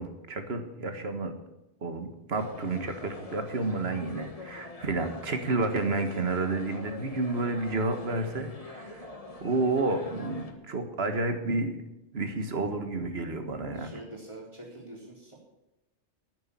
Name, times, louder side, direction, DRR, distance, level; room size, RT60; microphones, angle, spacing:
voice 1, 0.0-1.3 1.8-9.1 9.4-11.8 12.1-14.0, right 2 dB, 60° right, 7 dB, 1.8 m, -30 dB
sound 1, 2.3-10.5, left 2 dB, 30° left, 1.6 m, -44 dB
voice 2, 13.7-15.3, right 1 dB, 25° right, -2 dB, 4.0 m, -45 dB
10.0 x 9.7 x 9.7 m, 0.95 s
omnidirectional pair, 1.2 m